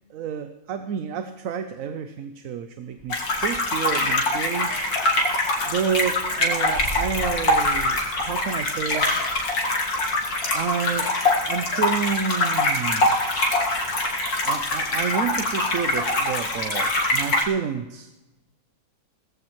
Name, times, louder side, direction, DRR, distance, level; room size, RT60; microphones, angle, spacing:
voice 1, 0.1-4.7 5.7-9.1 10.5-11.1 11.5-13.1 14.4-18.1, right 7 dB, 65° right, 8 dB, 1.1 m, -29 dB
sound 1, 2.9-3.9 4.2-9.4, left 1 dB, 60° left, 3.9 m, -39 dB
sound 2, 3.1-17.4, left 2 dB, 75° left, 2.4 m, -24 dB
18.5 x 14.5 x 3.1 m, 1.0 s
omnidirectional pair, 1.6 m